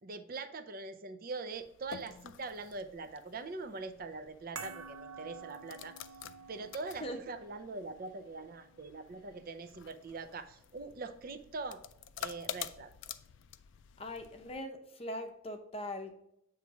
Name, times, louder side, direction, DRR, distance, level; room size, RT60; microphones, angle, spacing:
voice 1, 0.0-6.0 6.5-11.8 12.2-12.9, right 3 dB, 45° right, 9 dB, 0.5 m, -43 dB
sound 1, 1.5-14.6, left 9 dB, 60° left, 0.3 m, -49 dB
sound 2, 4.6-11.0 11.2-11.4, right 5 dB, 75° right, 0.8 m, -51 dB
voice 2, 14.0-16.2, left 1 dB, 25° left, 5 dB, 0.7 m, -41 dB
8.1 x 3.1 x 4.7 m, 0.82 s
head